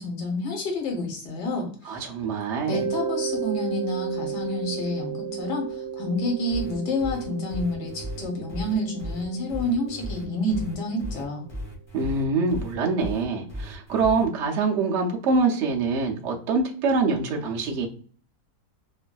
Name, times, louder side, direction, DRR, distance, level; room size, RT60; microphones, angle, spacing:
voice 1, 0.0-2.0 2.7-11.5, left 1 dB, 75° left, 2 dB, 1.5 m, -29 dB
voice 2, 1.8-2.8 11.9-17.9, right 4 dB, 70° right, 0 dB, 0.6 m, -25 dB
Mallet percussion, 2.7-11.3, right 7 dB, 85° right, 1.3 m, -34 dB
sound 1, 6.5-14.2, equal, 30° left, 0.5 m, -35 dB
3.1 x 2.5 x 2.2 m, 0.43 s
omnidirectional pair, 1.9 m